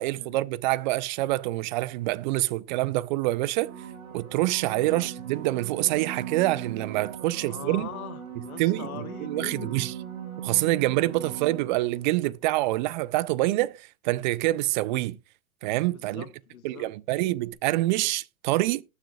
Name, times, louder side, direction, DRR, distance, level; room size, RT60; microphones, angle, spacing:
voice 1, 0.0-3.7 4.1-7.9 8.6-9.9 10.4-15.2 15.6-16.2 16.6-18.8, right 18 dB, 35° right, 0.5 m, -26 dB
sound 1, 3.6-12.2 17.5-17.6, right 9 dB, 80° right, 2.2 m, -39 dB
voice 2, 4.7-5.1 7.2-9.8 15.9-17.0, left 11 dB, 80° left, 0.8 m, -42 dB
18.5 x 6.5 x 2.3 m
hypercardioid pair, 110°, 42 cm